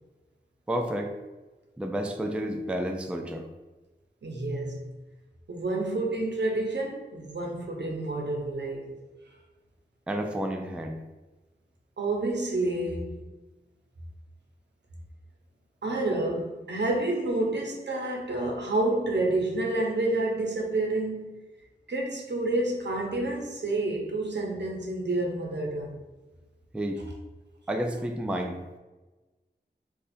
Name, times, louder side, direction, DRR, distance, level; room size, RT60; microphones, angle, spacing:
voice 1, 0.7-1.1 1.8-3.5 10.1-11.0 26.7-27.0 27.7-28.6, right 1 dB, 5° right, 4 dB, 0.3 m, -30 dB
voice 2, 4.2-4.9 5.5-8.9 12.0-13.2 15.8-21.4 21.9-26.0, right 2 dB, 75° right, 0 dB, 0.8 m, -29 dB
2.6 x 2.4 x 4.1 m, 1.2 s
wide cardioid pair, 65°, 18 cm